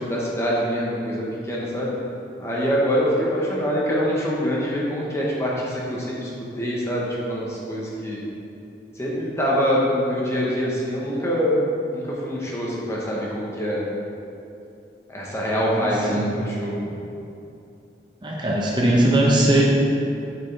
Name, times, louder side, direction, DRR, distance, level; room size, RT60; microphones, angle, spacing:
voice 1, 0.0-1.9 2.4-6.3 6.6-8.2 9.0-11.6 11.9-13.9 15.1-16.8, equal, 15° left, -5 dB, 1.0 m, -24 dB
voice 2, 15.7-16.4 18.2-19.6, right 1 dB, 25° right, -3 dB, 0.7 m, -20 dB
6.7 x 6.2 x 3.3 m, 2.7 s
head